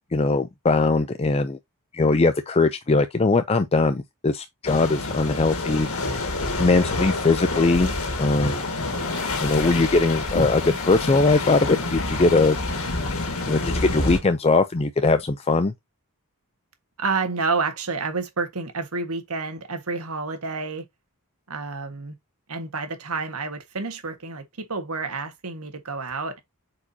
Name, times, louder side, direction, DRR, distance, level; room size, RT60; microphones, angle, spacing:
voice 1, 0.1-1.6 1.9-7.9 8.2-8.7 9.4-12.6 13.5-15.7, left 3 dB, 25° left, 0.5 m, -21 dB
sound 1, 4.6-14.2, left 2 dB, 70° left, 1.9 m, -27 dB
voice 2, 17.0-20.8 21.5-22.1 22.5-26.4, right 4 dB, 80° right, 1.7 m, -29 dB
8.3 x 4.8 x 2.8 m
head